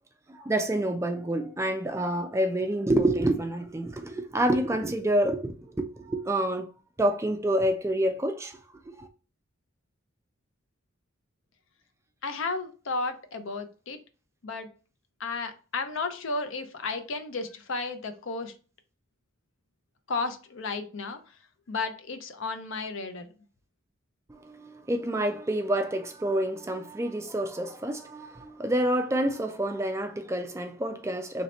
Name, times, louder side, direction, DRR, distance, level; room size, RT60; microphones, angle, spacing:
voice 1, 0.3-6.7 7.0-8.6 8.9-9.1 24.4-31.4, right 1 dB, 15° right, 0.3 m, -28 dB
voice 2, 12.2-14.0 14.4-14.7 15.2-18.5 20.1-21.4 21.7-23.3, left 3 dB, 70° left, 0.6 m, -33 dB
3.2 x 2.8 x 4.1 m
head